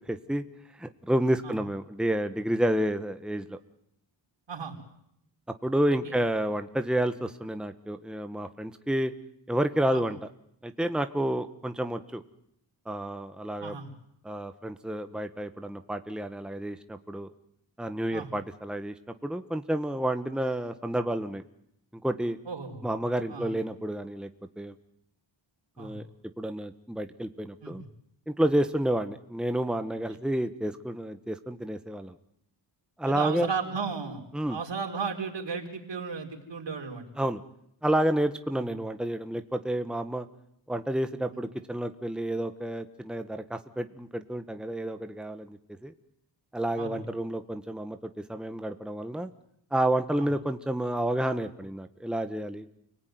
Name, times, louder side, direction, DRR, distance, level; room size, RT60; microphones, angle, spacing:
voice 1, 0.1-0.4 0.8-3.6 5.6-9.1 9.5-10.3 10.6-12.2 12.8-13.8 14.2-17.3 17.8-18.9 19.2-21.4 22.0-22.4 22.8-24.3 24.6-24.7 25.8-26.0 26.4-27.8 28.3-32.1 33.0-33.5 34.3-34.6 37.2-37.4 37.8-40.3 40.7-45.9 46.5-49.3 49.7-52.7, right 1 dB, ahead, 8 dB, 1.4 m, -30 dB
voice 2, 22.5-22.9 23.3-23.5 25.8-26.0 27.6-27.7 33.0-34.2 34.5-37.0 38.6-38.8 41.3-41.4 46.8-47.0 50.2-50.3, right 5 dB, 75° right, 3 dB, 4.9 m, -35 dB
29.5 x 19.0 x 9.5 m, 0.76 s
wide cardioid pair, 90°, 44 cm